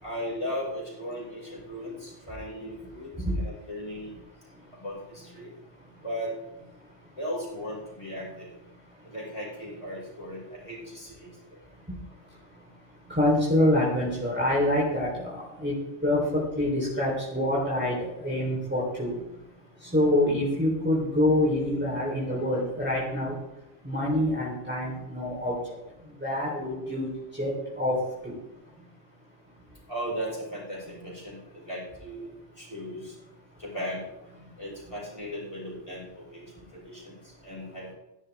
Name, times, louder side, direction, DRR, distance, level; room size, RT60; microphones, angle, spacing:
voice 1, 0.0-3.1 3.4-4.1 4.7-5.5 6.0-6.3 7.2-8.5 9.0-11.6 29.9-32.3 32.6-33.1 33.6-34.1 34.6-37.9, equal, 25° left, -5 dB, 6.0 m, -37 dB
voice 2, 13.1-15.7 16.0-18.0 18.2-19.1 19.9-23.4 23.8-25.5 26.2-27.1 27.4-28.0 28.2-28.3, left 1 dB, 10° right, -6 dB, 3.7 m, -26 dB
16.0 x 11.0 x 3.6 m, 0.94 s
omnidirectional pair, 1.2 m